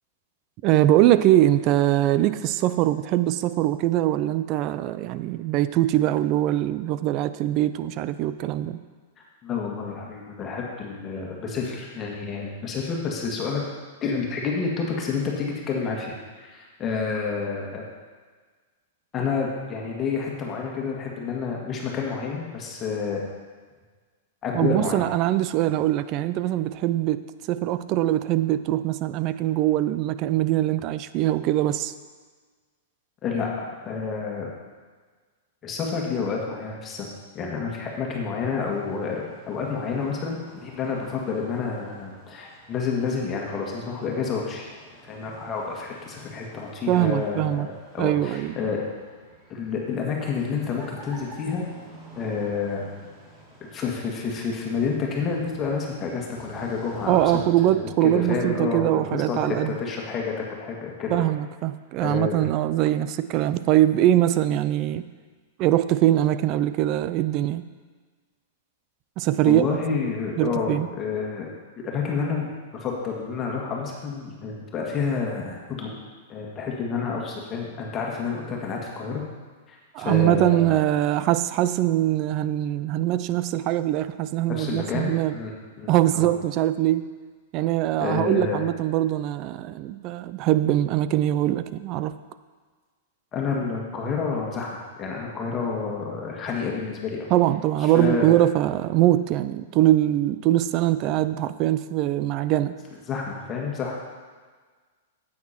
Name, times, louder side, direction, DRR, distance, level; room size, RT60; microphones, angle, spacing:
voice 1, 0.6-8.8 24.5-31.9 46.9-47.7 48.0-48.6 57.1-59.8 61.1-65.1 65.6-67.6 69.2-69.6 70.4-70.9 79.9-85.4 85.9-87.1 87.5-92.2 97.3-102.7, right 13 dB, 45° right, 13 dB, 0.5 m, -22 dB
voice 2, 9.4-13.6 14.0-17.8 19.1-23.2 24.4-25.0 33.2-34.5 35.6-37.1 37.3-44.7 45.0-48.8 49.5-51.6 52.1-52.9 53.7-57.3 57.6-61.2 62.0-62.5 69.4-71.5 71.8-75.9 76.3-79.2 79.7-80.8 84.5-85.5 85.8-86.3 88.0-88.6 93.3-97.3 97.8-98.3 103.1-104.0, left 5 dB, 30° left, -2 dB, 2.0 m, -29 dB
sound 1, 38.3-57.4, right 1 dB, 20° right, 3.4 m, -49 dB
9.4 x 8.8 x 4.4 m, 1.5 s
hypercardioid pair, 115°, 0 cm